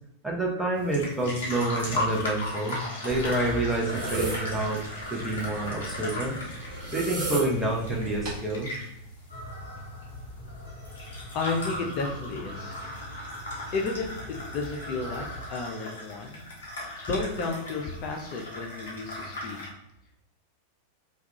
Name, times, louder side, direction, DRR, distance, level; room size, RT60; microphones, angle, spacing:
voice 1, 0.2-4.8 5.1-6.4 6.9-8.7, right 2 dB, 5° right, -3 dB, 0.6 m, -28 dB
sound 1, 0.7-19.7, left 1 dB, 60° left, 0.9 m, -37 dB
sound 2, 3.1-8.4, right 3 dB, 35° right, 1.1 m, -35 dB
sound 3, 9.3-15.5, equal, 85° right, 1.0 m, -42 dB
voice 2, 11.3-12.8 13.7-16.4 17.0-19.6, left 3 dB, 40° left, 0 dB, 0.4 m, -32 dB
2.3 x 2.3 x 2.7 m, 0.82 s
figure-of-eight pair, 90°, 0 cm